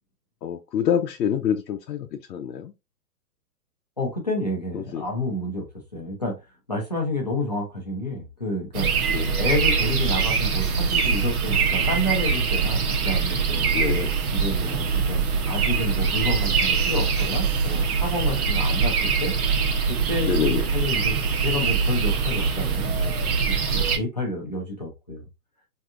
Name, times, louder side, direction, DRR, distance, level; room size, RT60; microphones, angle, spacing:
voice 1, 0.4-2.7 4.7-5.0 9.1-9.4 13.7-14.1 20.2-20.7, left 8 dB, 80° left, 0.7 m, -26 dB
voice 2, 4.0-5.7 5.9-6.4 6.7-8.9 9.4-13.7 14.3-19.3 19.9-23.1 23.5-25.2, left 1 dB, 25° left, 0.5 m, -30 dB
sound 1, 8.7-24.0, right 5 dB, 60° right, 0.9 m, -23 dB
3.4 x 2.7 x 2.4 m
hypercardioid pair, 170°, 50 cm